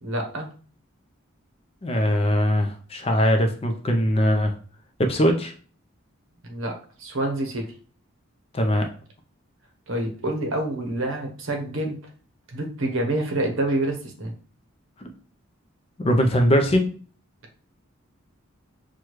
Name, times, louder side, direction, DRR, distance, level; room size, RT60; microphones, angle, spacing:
voice 1, 0.0-0.5 6.4-6.7 7.0-7.7 9.9-12.0 12.5-14.3, right 1 dB, 65° right, 2 dB, 0.9 m, -27 dB
voice 2, 1.8-4.5 5.0-5.5 8.5-8.9 15.0-15.1 16.0-16.8, equal, 25° left, 5 dB, 0.4 m, -21 dB
6.2 x 2.3 x 3.0 m, 0.42 s
head